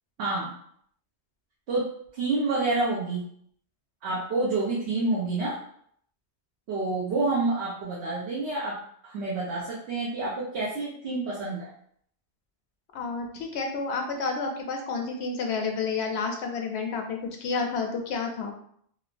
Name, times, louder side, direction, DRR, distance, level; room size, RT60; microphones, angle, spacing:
voice 1, 0.2-0.5 1.7-1.9 2.1-3.2 4.0-5.6 6.7-8.8 9.0-11.7, right 3 dB, 80° right, -7 dB, 0.9 m, -28 dB
voice 2, 12.9-18.5, left 4 dB, 90° left, 3 dB, 0.9 m, -30 dB
3.1 x 2.0 x 2.4 m, 0.65 s
omnidirectional pair, 1.1 m